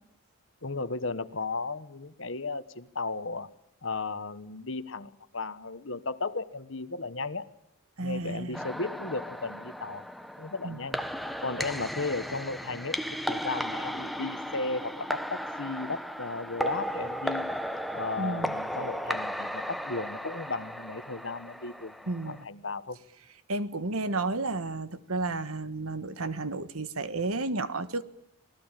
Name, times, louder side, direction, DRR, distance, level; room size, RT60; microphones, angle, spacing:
voice 1, 0.6-3.5 3.8-7.5 8.0-10.1 10.4-11.0 11.4-17.5 17.9-22.0 22.2-23.0, left 3 dB, 60° left, 1.3 m, -35 dB
voice 2, 8.0-8.6 10.6-10.8 18.2-18.5 22.1-22.5 23.5-28.0, right 2 dB, 85° right, 1.5 m, -32 dB
sound 1, 8.5-22.4, equal, ahead, 0.9 m, -35 dB
27.0 x 18.5 x 9.1 m
head